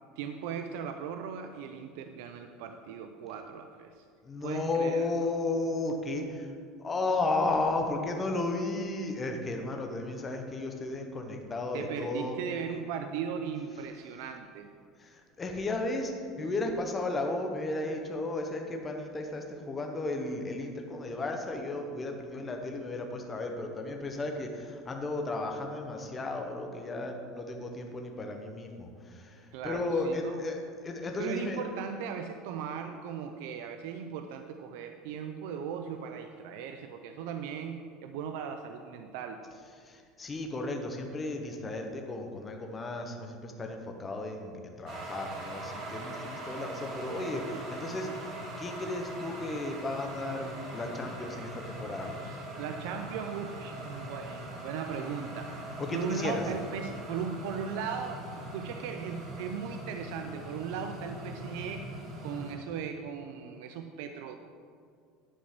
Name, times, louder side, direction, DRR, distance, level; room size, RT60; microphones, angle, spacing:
voice 1, 0.2-4.0 4.4-5.3 11.7-14.7 29.5-30.4 31.2-39.4 52.2-55.5 55.9-61.9 62.2-64.4, right 7 dB, 70° right, 6 dB, 0.5 m, -38 dB
voice 2, 4.2-6.5 6.8-12.4 15.0-31.6 39.8-48.1 48.6-52.1 55.8-56.4, left 2 dB, 15° left, 3 dB, 0.9 m, -34 dB
sound 1, 44.9-62.5, right 1 dB, 40° right, 1.8 m, -41 dB
10.0 x 5.3 x 6.0 m, 2.1 s
cardioid pair, 165°, 0 cm